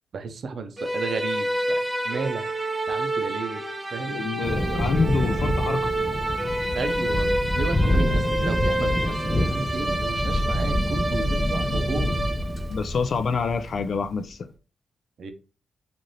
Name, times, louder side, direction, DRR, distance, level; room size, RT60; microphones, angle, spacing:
voice 1, 0.1-1.8 2.0-2.4 2.9-3.6 3.9-4.3 6.7-7.3 7.6-12.2 15.2-15.3, right 4 dB, 55° right, 0.6 m, -33 dB
sound 1, 0.8-12.8, right 1 dB, 10° right, 0.6 m, -28 dB
voice 2, 4.1-5.9 11.1-11.3 12.7-14.4, left 5 dB, 50° left, 0.4 m, -27 dB
Thunder, 4.4-14.1, left 1 dB, 30° left, 1.2 m, -26 dB
3.2 x 2.5 x 4.0 m
wide cardioid pair, 140°, 0 cm